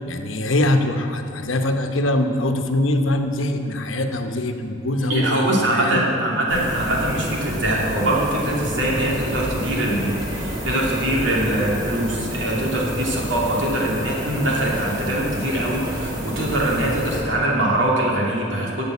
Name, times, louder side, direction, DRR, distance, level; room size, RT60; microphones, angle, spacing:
voice 1, 0.1-6.0, left 1 dB, 90° left, 5 dB, 1.0 m, -23 dB
voice 2, 5.1-18.8, right 1 dB, 70° right, -3 dB, 2.7 m, -23 dB
sound 1, 6.5-17.2, equal, 20° right, 2.2 m, -29 dB
12.0 x 7.8 x 8.3 m, 2.6 s
head